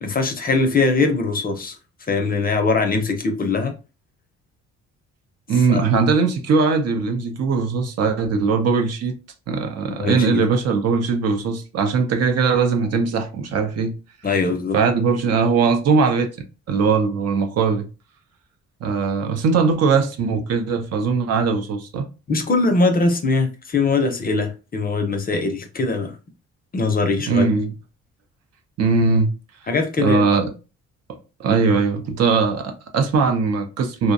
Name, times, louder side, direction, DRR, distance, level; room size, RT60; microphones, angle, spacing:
voice 1, 0.0-1.7 2.1-3.7 5.7-5.8 10.0-10.4 14.2-14.8 22.3-26.2 26.7-27.5 29.7-30.2, left 3 dB, 30° left, 0.5 m, -21 dB
voice 2, 5.5-9.1 9.5-14.0 14.7-16.3 16.7-17.9 18.8-22.1 27.3-27.7 28.8-29.3 30.0-30.5 31.4-34.1, right 4 dB, 55° right, 0.6 m, -20 dB
2.5 x 2.1 x 2.6 m
cardioid pair, 90°, 30 cm